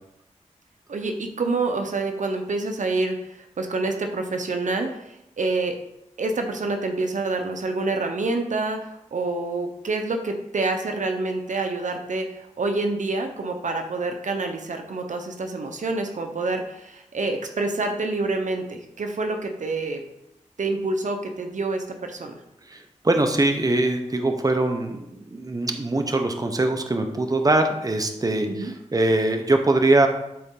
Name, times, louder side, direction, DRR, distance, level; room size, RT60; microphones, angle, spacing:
voice 1, 0.9-5.8 6.2-20.0 20.6-22.4 28.5-28.7, right 3 dB, 70° right, 5 dB, 0.9 m, -27 dB
voice 2, 22.7-30.1, right 2 dB, 30° right, 5 dB, 0.9 m, -22 dB
12.0 x 4.1 x 3.8 m, 0.84 s
wide cardioid pair, 85°, 13 cm